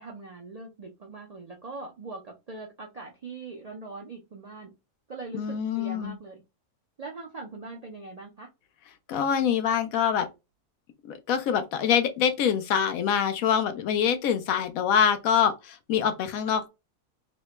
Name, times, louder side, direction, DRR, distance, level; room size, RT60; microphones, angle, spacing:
voice 1, 0.0-4.7 5.1-6.4 7.0-8.5, right 3 dB, 60° right, 0.4 m, -41 dB
voice 2, 5.3-6.2 9.1-10.3 11.0-16.7, left 8 dB, 85° left, 1.1 m, -25 dB
3.2 x 2.1 x 2.9 m
omnidirectional pair, 1.4 m